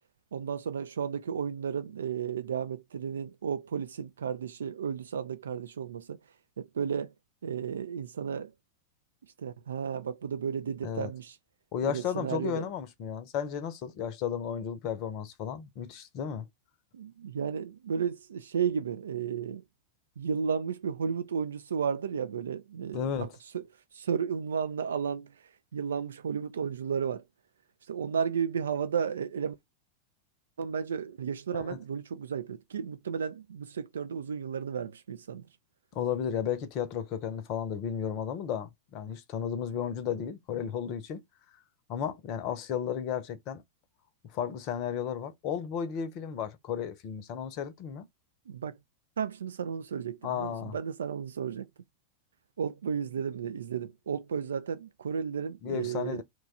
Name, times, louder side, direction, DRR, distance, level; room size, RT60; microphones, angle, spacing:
voice 1, 0.3-6.2 6.6-7.1 7.4-8.5 9.4-11.4 11.8-12.7 16.9-19.6 20.2-23.3 23.5-23.6 23.9-27.2 27.9-29.6 30.6-35.5 48.5-48.8 49.2-51.7 52.6-56.2, right 7 dB, 65° right, 0.3 m, -33 dB
voice 2, 11.7-16.5 22.9-23.3 31.5-31.8 35.9-41.2 41.9-43.6 44.3-48.1 50.2-50.8 55.6-56.2, left 8 dB, 40° left, 0.6 m, -34 dB
3.0 x 2.3 x 4.0 m
figure-of-eight pair, 90°, 0 cm